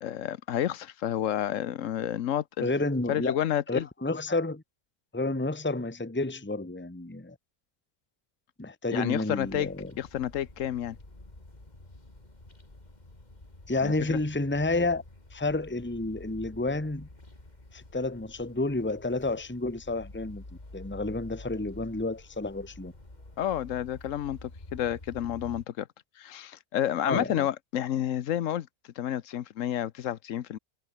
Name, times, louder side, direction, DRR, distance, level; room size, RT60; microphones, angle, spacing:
voice 1, 0.0-2.7 3.1-3.9 8.9-9.7 10.0-11.0 13.8-14.2 23.4-25.9 26.2-28.7 29.0-30.6, left 11 dB, 65° left, 1.1 m, -30 dB
voice 2, 2.6-3.4 3.7-4.6 5.1-7.3 8.6-9.9 13.7-15.0 15.3-17.1 17.7-20.4 20.7-22.9 27.0-27.5, left 2 dB, 10° left, 1.6 m, -30 dB
sound 1, 9.4-25.7, left 2 dB, 30° left, 3.6 m, -49 dB
omnidirectional pair, 1.6 m